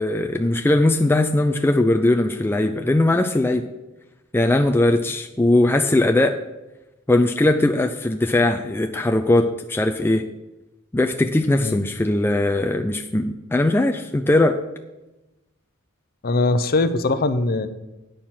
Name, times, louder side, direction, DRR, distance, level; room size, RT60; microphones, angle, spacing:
voice 1, 0.0-3.6 4.3-6.4 7.1-10.2 10.9-14.6, left 2 dB, 10° left, 5 dB, 0.4 m, -19 dB
voice 2, 16.2-17.7, left 2 dB, 45° left, 11 dB, 0.7 m, -21 dB
9.1 x 6.6 x 5.8 m, 1.0 s
head